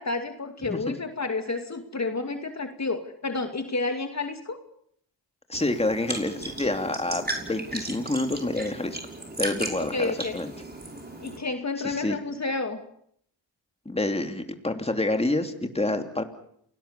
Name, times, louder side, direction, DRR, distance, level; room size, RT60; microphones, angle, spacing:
voice 1, 0.0-4.6 9.9-10.4 11.2-12.8, left 3 dB, 40° left, 6 dB, 2.5 m, -30 dB
voice 2, 5.5-9.0 9.4-10.5 11.8-12.2 13.8-16.2, left 2 dB, 15° left, 6 dB, 3.0 m, -28 dB
sound 1, 5.5-11.4, right 2 dB, 20° right, 6.0 m, -36 dB
28.0 x 19.0 x 6.9 m, 0.69 s
cardioid pair, 65°, 44 cm